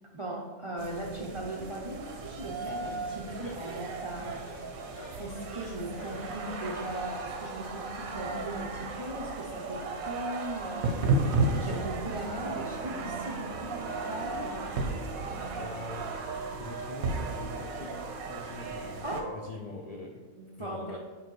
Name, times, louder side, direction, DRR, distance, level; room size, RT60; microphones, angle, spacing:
voice 1, 0.1-4.5 5.2-11.1 11.5-14.7 19.0-19.5 20.4-21.0, right 1 dB, 40° right, -1 dB, 0.4 m, -38 dB
sound 1, 0.8-19.2, right 3 dB, 85° right, 1.2 m, -34 dB
Laughter, 2.0-17.0, left 2 dB, 50° left, 1.4 m, -51 dB
voice 2, 15.5-16.2 16.6-19.0 19.3-20.2 20.6-21.0, left 2 dB, 70° left, 1 dB, 0.3 m, -43 dB
7.2 x 5.3 x 3.2 m, 1.3 s
omnidirectional pair, 1.4 m